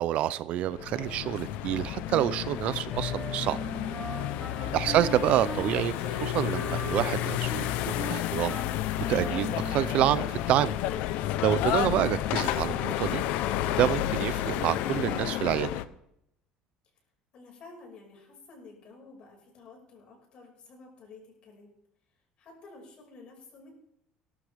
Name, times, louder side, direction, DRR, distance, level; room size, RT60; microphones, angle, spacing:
voice 1, 0.0-3.6 4.7-5.9 6.2-8.6 9.1-10.8 11.4-13.2 13.8-15.7, right 12 dB, 50° right, 16 dB, 0.5 m, -27 dB
sound 1, 0.7-15.8, left 13 dB, 70° left, 0.8 m, -31 dB
Wind instrument woodwind instrument, 2.9-10.5, right 2 dB, 15° right, 4.3 m, -40 dB
voice 2, 4.4-4.7 17.3-21.7 22.4-23.7, left 3 dB, 45° left, 0 dB, 5.5 m, -51 dB
18.5 x 13.0 x 3.5 m, 0.78 s
cardioid pair, 155°, 3 cm